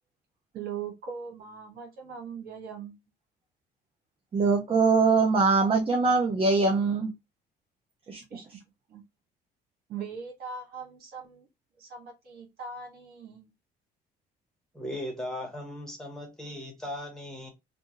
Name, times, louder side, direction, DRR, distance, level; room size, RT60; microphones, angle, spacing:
voice 1, 0.5-3.0 8.3-8.6 8.9-9.0 9.9-11.5 11.8-13.5, right 6 dB, 65° right, 1.7 m, -40 dB
voice 2, 4.3-7.1 8.1-8.2, right 4 dB, 35° right, 0.9 m, -22 dB
voice 3, 14.7-17.5, left 1 dB, 5° left, 1.5 m, -37 dB
3.4 x 2.6 x 3.1 m
cardioid pair, 110°, 17 cm